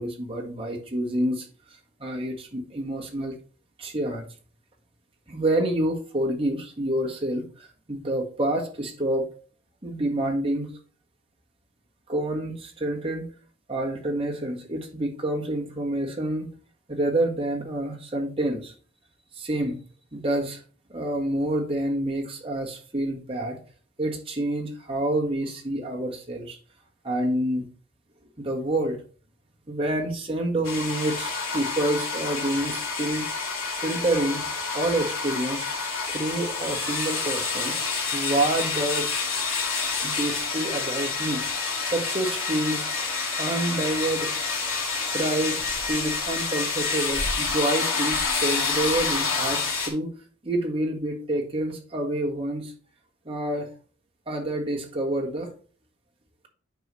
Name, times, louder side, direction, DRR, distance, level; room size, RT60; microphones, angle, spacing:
voice 1, 0.0-1.5 2.0-3.3 3.8-4.3 5.3-9.3 9.8-10.8 12.1-13.3 13.7-16.5 16.9-18.7 19.3-19.8 20.1-20.6 20.9-23.6 24.0-26.6 27.0-27.7 28.4-29.0 29.7-33.2 33.8-34.4 34.7-35.7 36.1-37.8 38.1-39.1 40.0-41.4 41.8-42.9 43.4-44.6 45.1-50.1 50.4-52.7 53.2-53.7 54.3-55.5, right 1 dB, 25° right, -1 dB, 1.5 m, -28 dB
sound 1, 30.6-49.9, left 4 dB, 80° left, 2.2 m, -28 dB
8.9 x 5.5 x 3.2 m, 0.40 s
head